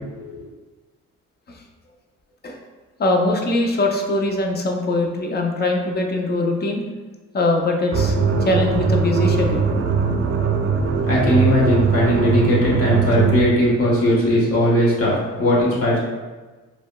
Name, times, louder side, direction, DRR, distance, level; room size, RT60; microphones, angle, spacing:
voice 1, 0.1-0.4 11.0-16.0, equal, 50° left, -5 dB, 1.4 m, -18 dB
voice 2, 3.0-6.8 7.3-9.7, left 2 dB, 35° left, 2 dB, 0.5 m, -22 dB
sound 1, 7.9-13.6, right 5 dB, 45° right, 0.5 m, -20 dB
4.9 x 2.2 x 2.2 m, 1.3 s
cardioid pair, 90°, 30 cm